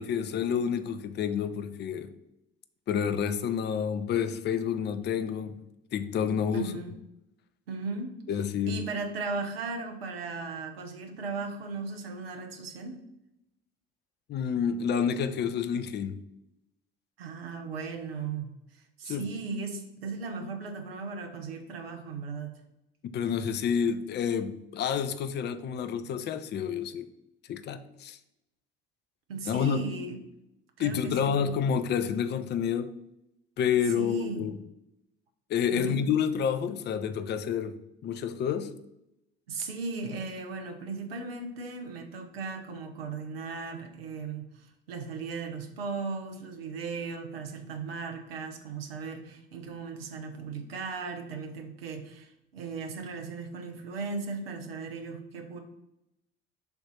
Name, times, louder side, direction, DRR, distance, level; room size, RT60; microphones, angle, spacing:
voice 1, 0.0-2.1 2.9-5.6 5.9-6.7 8.3-8.8 14.3-16.1 19.1-19.3 23.0-27.1 27.5-28.2 29.5-29.8 30.8-32.9 33.6-34.5 35.5-37.8 38.0-38.7, left 7 dB, 35° left, 0.6 m, -29 dB
voice 2, 6.5-6.9 7.7-8.1 8.7-13.0 17.2-22.5 29.3-30.2 30.8-31.5 33.9-34.5 35.7-36.0 39.5-55.6, right 4 dB, 75° right, 1.0 m, -37 dB
7.0 x 2.7 x 5.6 m
figure-of-eight pair, 55°, 30 cm